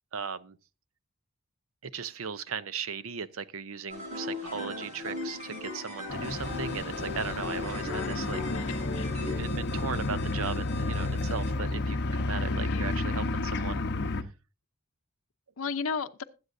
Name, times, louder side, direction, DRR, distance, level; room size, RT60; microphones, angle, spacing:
voice 1, 0.1-0.6 1.8-8.4 9.4-14.3, right 6 dB, 85° right, 0.7 m, -37 dB
sound 1, 3.9-9.4, left 2 dB, 35° right, 6.6 m, -38 dB
voice 2, 4.4-4.7 7.7-8.2 8.5-9.1 12.7-13.0 15.6-16.2, left 5 dB, 85° left, 0.7 m, -36 dB
sound 2, 6.1-14.2, left 2 dB, 55° left, 1.0 m, -31 dB
Alarm, 6.2-11.5, left 2 dB, 40° left, 6.3 m, -47 dB
21.0 x 8.0 x 2.6 m
head